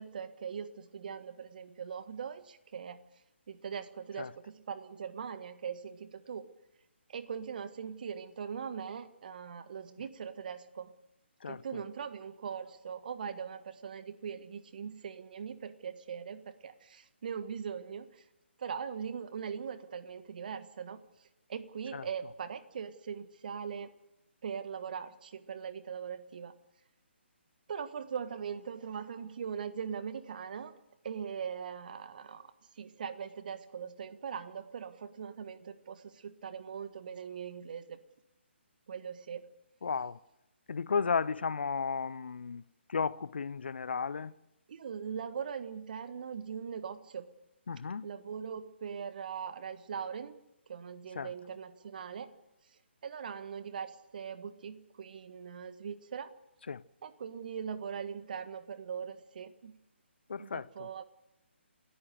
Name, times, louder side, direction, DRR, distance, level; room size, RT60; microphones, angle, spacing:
voice 1, 0.0-3.0 3.5-6.5 7.1-10.9 11.4-18.2 18.6-23.9 24.4-26.6 27.7-30.7 31.0-38.0 38.9-39.5 44.7-47.2 48.0-50.4 50.7-52.3 53.0-56.3 57.0-59.8 60.4-61.0, right 7 dB, 45° right, 1.6 m, -41 dB
voice 2, 39.8-40.2 40.7-42.6 42.9-44.3 47.7-48.1 51.2-51.3 56.7-56.8 60.3-60.9, left 5 dB, 60° left, 0.7 m, -34 dB
28.5 x 14.0 x 7.9 m
figure-of-eight pair, 140°, 6 cm